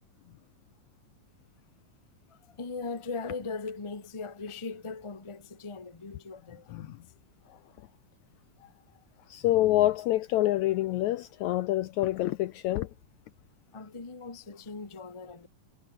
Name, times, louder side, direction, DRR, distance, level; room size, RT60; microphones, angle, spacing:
voice 1, 2.3-6.9 13.7-15.5, left 4 dB, 25° left, 0.7 m, -39 dB
voice 2, 9.3-12.9, left 15 dB, 80° left, 1.8 m, -26 dB
omnidirectional pair, 3.9 m